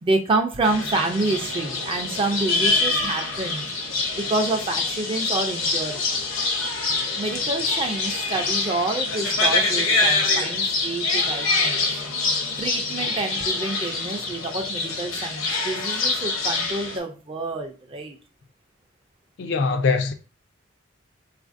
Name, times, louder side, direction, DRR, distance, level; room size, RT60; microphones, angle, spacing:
voice 1, 0.0-3.7 4.1-6.0 7.2-11.9 12.6-18.2, right 2 dB, 25° right, 0.3 m, -28 dB
sound 1, 0.6-17.0, left 3 dB, 75° left, 0.7 m, -25 dB
voice 2, 19.4-20.1, left 4 dB, 60° left, 0.3 m, -22 dB
3.8 x 2.5 x 2.5 m
head